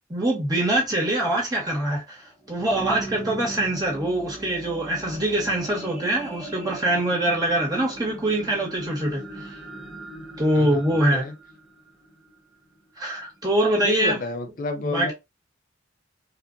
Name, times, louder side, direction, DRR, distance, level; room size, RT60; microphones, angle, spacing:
voice 1, 0.1-2.2 2.5-9.2 10.4-11.2 13.0-14.2 14.9-15.1, right 1 dB, 20° right, 1.7 m, -24 dB
sound 1, 2.2-12.8 13.4-13.5, right 1 dB, ahead, 1.1 m, -39 dB
voice 2, 13.8-15.1, left 2 dB, 45° left, 0.5 m, -30 dB
4.3 x 2.5 x 2.6 m
head